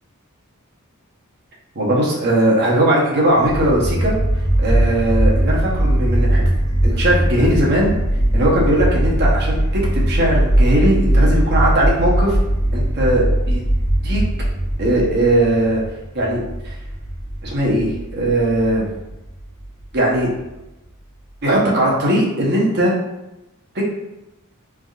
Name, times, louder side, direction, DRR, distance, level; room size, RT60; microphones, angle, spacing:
voice 1, 1.7-4.2 4.6-6.4 6.8-8.0 8.3-9.6 9.9-12.4 12.7-13.6 14.0-14.2 14.8-15.8 16.1-16.7 17.4-18.9 19.9-20.3 21.4-22.9 23.7-23.8, right 1 dB, 50° right, -4 dB, 0.8 m, -18 dB
sound 1, 3.4-20.4, right 1 dB, 35° left, 1.4 m, -19 dB
3.4 x 2.6 x 2.3 m, 0.96 s
head